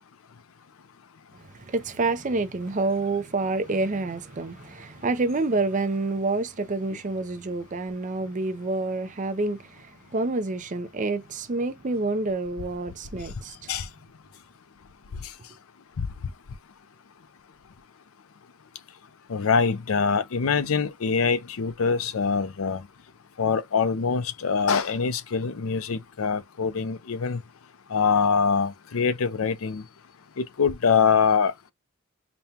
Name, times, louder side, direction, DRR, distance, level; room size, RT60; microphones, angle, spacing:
voice 1, 1.5-13.7, right 3 dB, 35° right, 0.5 m, -28 dB
voice 2, 19.3-22.8 23.4-27.4 27.9-29.8 30.4-31.5, left 5 dB, 75° left, 0.5 m, -24 dB
5.2 x 2.2 x 2.8 m
head